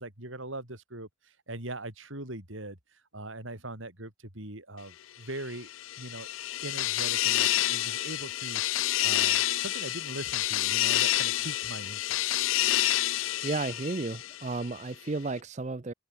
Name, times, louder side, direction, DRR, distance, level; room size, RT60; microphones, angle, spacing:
voice 1, 0.0-5.7 6.0-6.3 6.6-12.3, right 2 dB, 75° right, 6.1 m, -41 dB
sound 1, 5.5-14.7, left 15 dB, 80° left, 0.5 m, -28 dB
voice 2, 13.4-15.9, right 3 dB, 35° right, 0.5 m, -33 dB
open air
head